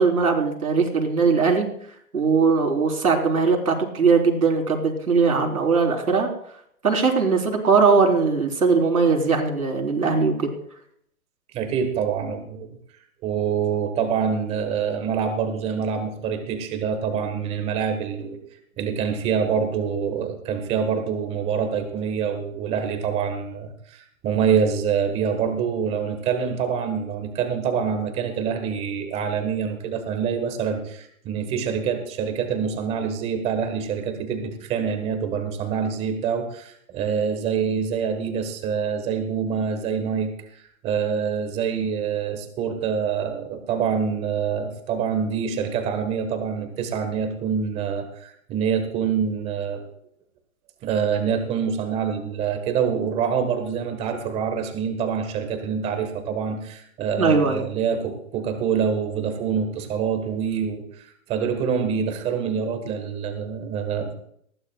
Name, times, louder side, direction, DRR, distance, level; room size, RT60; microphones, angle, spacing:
voice 1, 0.0-1.7 2.1-6.3 6.8-10.5 57.2-57.6, right 5 dB, 85° right, 3 dB, 3.9 m, -20 dB
voice 2, 11.5-12.7 13.2-49.8 50.8-64.2, right 7 dB, 15° right, 7 dB, 1.3 m, -26 dB
19.5 x 15.5 x 2.3 m, 0.67 s
hypercardioid pair, 150°, 43 cm